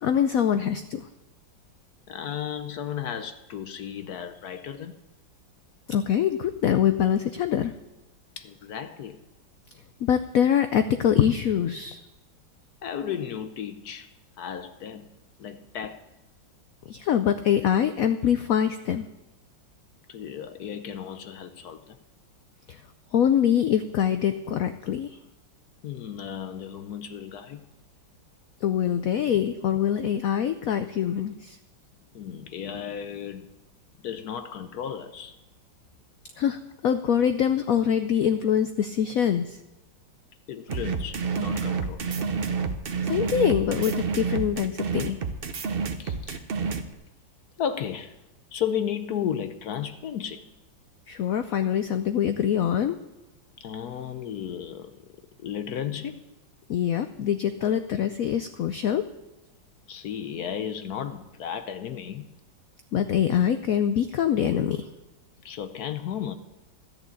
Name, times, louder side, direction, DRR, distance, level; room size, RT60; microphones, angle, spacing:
voice 1, 0.0-1.1 5.9-7.7 10.0-12.0 16.9-19.1 22.7-22.8 23.1-25.2 28.6-31.6 36.4-39.6 43.0-45.2 51.1-53.0 56.7-59.1 62.9-64.9, left 9 dB, 85° left, 0.7 m, -24 dB
voice 2, 2.1-5.0 8.4-9.2 12.8-14.1 14.4-15.1 15.4-16.0 20.1-22.0 25.8-27.7 32.1-33.5 34.0-35.3 40.5-42.0 46.0-46.5 47.6-48.2 48.5-50.4 53.6-54.9 55.4-56.2 59.9-62.3 65.4-66.3, left 8 dB, 65° left, 1.0 m, -34 dB
sound 1, 40.7-46.8, right 5 dB, 60° right, 0.6 m, -29 dB
13.5 x 6.7 x 8.4 m
omnidirectional pair, 2.1 m